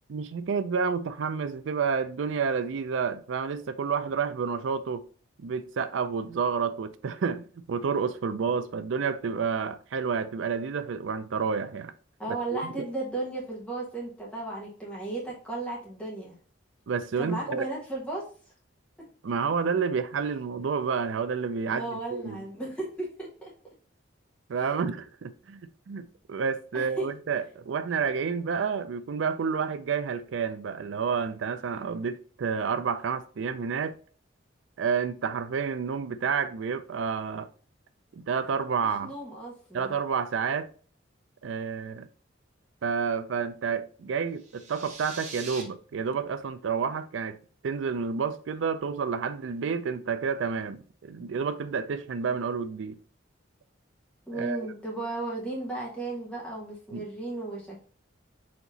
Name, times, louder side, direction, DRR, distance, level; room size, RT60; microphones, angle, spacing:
voice 1, 0.1-5.0 5.4-11.9 12.5-12.9 16.9-17.6 19.2-22.4 24.5-34.0 34.8-37.5 38.1-39.1 39.7-40.7 41.4-42.1 42.8-47.4 47.6-53.0 54.3-54.6 56.9-57.0, right 6 dB, 75° right, 0.4 m, -30 dB
voice 2, 12.2-16.3 17.2-18.2 21.7-23.5 26.7-27.1 39.0-39.9 54.3-57.8, right 2 dB, 5° left, 1.1 m, -35 dB
sound 1, 44.4-45.6, right 4 dB, 40° right, 0.8 m, -42 dB
4.2 x 2.9 x 3.9 m
head